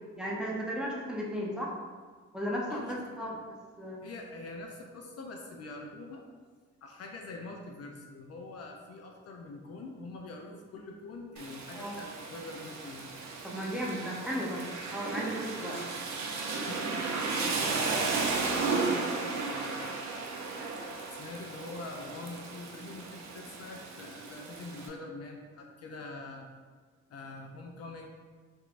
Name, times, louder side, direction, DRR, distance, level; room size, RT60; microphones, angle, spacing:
voice 1, 0.2-1.7 2.3-4.0 11.7-12.0 13.4-14.6 14.9-15.8, equal, 5° right, -4 dB, 0.7 m, -35 dB
voice 2, 2.7-3.4 4.0-6.3 6.8-13.1 16.7-20.1 21.1-26.5 27.1-28.1, left 2 dB, 55° left, 1 dB, 0.5 m, -44 dB
Rain, 11.4-24.9, right 4 dB, 65° right, 0.6 m, -34 dB
3.5 x 3.1 x 2.5 m, 1.5 s
cardioid pair, 90°, 30 cm